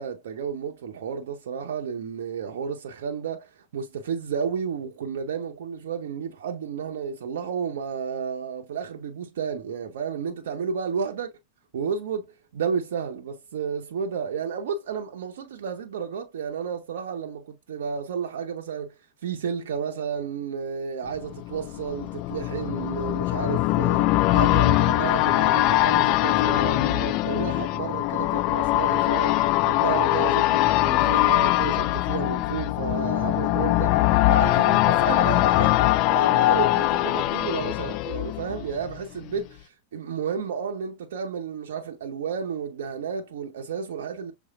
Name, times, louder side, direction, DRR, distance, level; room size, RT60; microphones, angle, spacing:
voice 1, 0.0-11.3 11.7-12.3 12.5-34.0 34.3-44.3, right 7 dB, 60° right, 0.7 m, -32 dB
sound 1, 21.2-39.0 39.3-39.4, left 16 dB, 40° left, 0.3 m, -22 dB
6.2 x 3.3 x 2.3 m
figure-of-eight pair, 90°, 0 cm